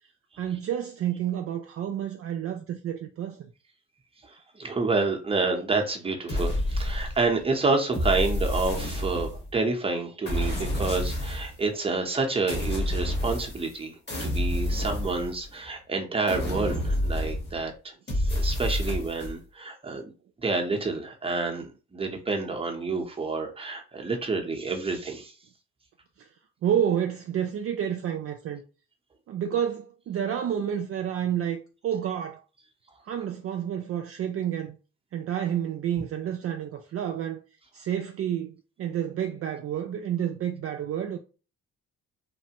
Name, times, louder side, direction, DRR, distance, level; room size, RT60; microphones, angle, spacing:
voice 1, 0.4-3.5 26.2-26.3 26.6-28.6 29.3-32.4 33.0-34.8 35.1-37.4 37.7-41.2, right 9 dB, 50° right, 0.4 m, -29 dB
voice 2, 4.2-13.9 14.2-17.7 18.2-20.1 20.4-25.3, right 3 dB, 20° right, 0.8 m, -28 dB
sound 1, 6.3-7.4 7.9-9.6 10.3-11.6 12.5-13.8 14.1-15.7 16.3-17.6 18.1-19.3, left 1 dB, 35° left, 1.4 m, -29 dB
3.2 x 2.1 x 2.8 m
cardioid pair, 90°, 30 cm